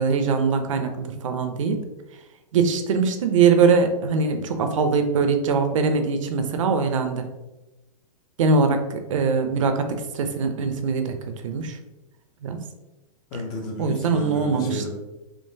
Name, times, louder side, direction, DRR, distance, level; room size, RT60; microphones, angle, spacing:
voice 1, 0.0-1.8 2.5-7.3 8.4-11.8 12.4-12.6 13.8-14.9, right 5 dB, 55° right, 6 dB, 0.5 m, -22 dB
voice 2, 13.3-14.9, left 1 dB, 20° left, 1 dB, 0.4 m, -32 dB
3.7 x 2.9 x 2.7 m, 1.0 s
hypercardioid pair, 165°, 19 cm